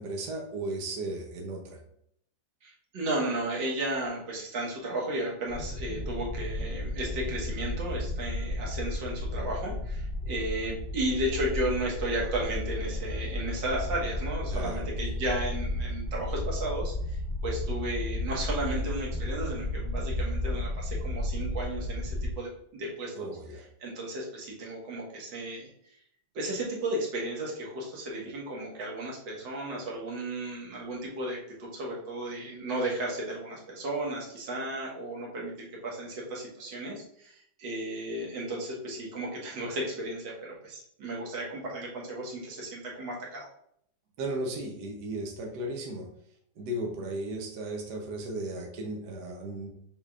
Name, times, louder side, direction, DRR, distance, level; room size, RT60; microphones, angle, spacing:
voice 1, 0.0-1.8 14.5-15.1 23.2-23.6 44.2-46.1 46.6-49.8, right 1 dB, 70° right, 1 dB, 1.3 m, -35 dB
voice 2, 2.6-25.7 26.4-43.5, right 1 dB, 90° right, -3 dB, 1.9 m, -34 dB
sound 1, 5.5-22.3, left 1 dB, 50° left, 1.0 m, -33 dB
5.6 x 3.4 x 2.4 m, 0.70 s
omnidirectional pair, 1.9 m